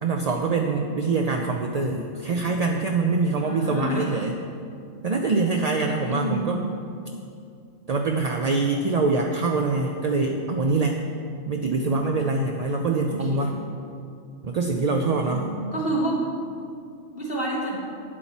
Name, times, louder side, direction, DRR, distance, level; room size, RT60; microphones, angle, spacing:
voice 1, 0.0-4.4 5.0-6.6 7.9-11.0 11.5-13.6 14.4-15.5, right 3 dB, 45° right, 2 dB, 0.5 m, -24 dB
voice 2, 3.4-4.1 6.1-6.5 13.0-13.5 15.2-16.2 17.1-17.8, right 1 dB, 50° left, -5 dB, 2.5 m, -28 dB
11.5 x 8.6 x 4.2 m, 2.5 s
omnidirectional pair, 1.3 m